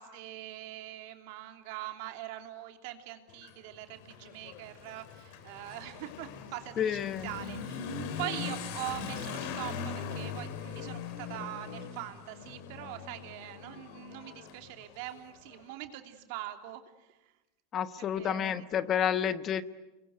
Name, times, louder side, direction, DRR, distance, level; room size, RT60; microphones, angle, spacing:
voice 1, 0.0-17.3 18.0-18.7, right 14 dB, 65° right, 6 dB, 3.0 m, -43 dB
Motorcycle / Accelerating revving vroom, 3.3-15.6, left 6 dB, 65° left, 3.3 m, -41 dB
voice 2, 6.8-7.3 17.7-19.6, left 9 dB, 35° left, 13 dB, 1.2 m, -30 dB
28.0 x 22.5 x 9.4 m, 1.0 s
supercardioid pair, 115°, 0 cm